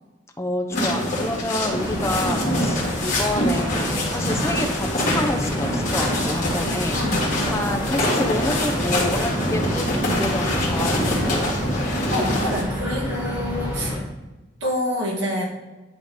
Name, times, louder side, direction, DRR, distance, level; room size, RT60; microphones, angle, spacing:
voice 1, 0.4-7.0 7.5-11.5 13.8-14.0, left 1 dB, 15° left, 4 dB, 0.7 m, -28 dB
sound 1, 0.7-12.6, left 1 dB, 40° left, 2.0 m, -24 dB
sound 2, 1.7-14.0, equal, 10° right, 1.5 m, -29 dB
voice 2, 6.9-7.2 12.1-13.9 14.6-15.4, left 1 dB, 90° right, -4 dB, 2.3 m, -27 dB
10.5 x 3.8 x 3.6 m, 1.1 s
head